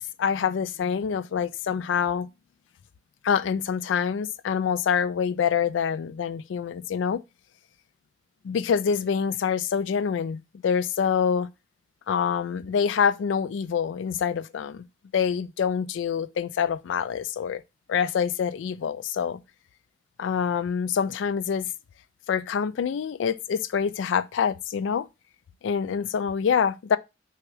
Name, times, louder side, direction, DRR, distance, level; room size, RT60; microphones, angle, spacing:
voice 1, 0.2-2.3 3.2-7.2 8.4-11.5 12.1-14.8 15.1-17.6 17.9-19.4 20.2-21.7 22.3-25.1 25.6-27.0, left 7 dB, 90° left, 0.3 m, -26 dB
6.0 x 2.4 x 3.2 m
head